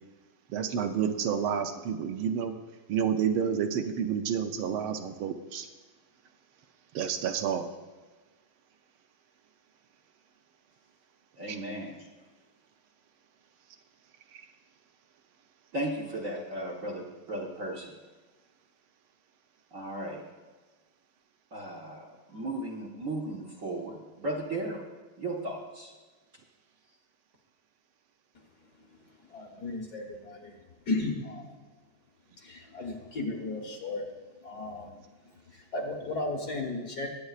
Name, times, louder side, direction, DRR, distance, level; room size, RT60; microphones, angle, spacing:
voice 1, 0.5-2.5 2.9-5.7 6.9-7.7 11.5-11.6 14.3-14.5, right 8 dB, 75° right, 6 dB, 1.5 m, -30 dB
voice 2, 11.4-12.1 15.7-18.0 19.7-20.2 21.5-24.8 25.2-25.9, right 1 dB, 50° right, -1 dB, 1.1 m, -36 dB
voice 3, 29.3-30.5 30.9-31.6 32.4-34.1 34.4-35.0 35.5-37.1, left 2 dB, 50° left, 1 dB, 1.7 m, -35 dB
19.5 x 8.5 x 2.4 m, 1.3 s
omnidirectional pair, 2.4 m